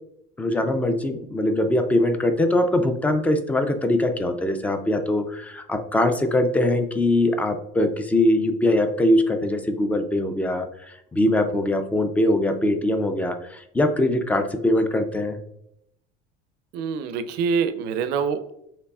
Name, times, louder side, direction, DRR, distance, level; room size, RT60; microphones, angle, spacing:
voice 1, 0.4-15.4, left 1 dB, 10° left, 7 dB, 0.3 m, -22 dB
voice 2, 16.7-18.5, right 6 dB, 60° right, 10 dB, 0.5 m, -25 dB
6.5 x 3.0 x 2.3 m, 0.76 s
cardioid pair, 155°, 19 cm